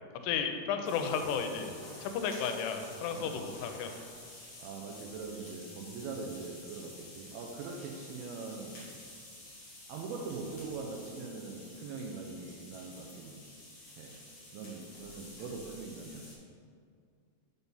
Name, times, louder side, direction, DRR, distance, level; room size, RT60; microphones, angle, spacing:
voice 1, 0.2-1.7 2.0-3.9, left 6 dB, 85° left, 6 dB, 2.7 m, -33 dB
sound 1, 0.8-16.4, left 2 dB, 45° left, 2.4 m, -51 dB
voice 2, 3.1-3.5 4.2-9.0 9.9-13.5 14.0-14.2 14.5-16.3, right 4 dB, 80° right, 0 dB, 2.3 m, -42 dB
7.0 x 4.1 x 5.4 m, 2.2 s
omnidirectional pair, 4.8 m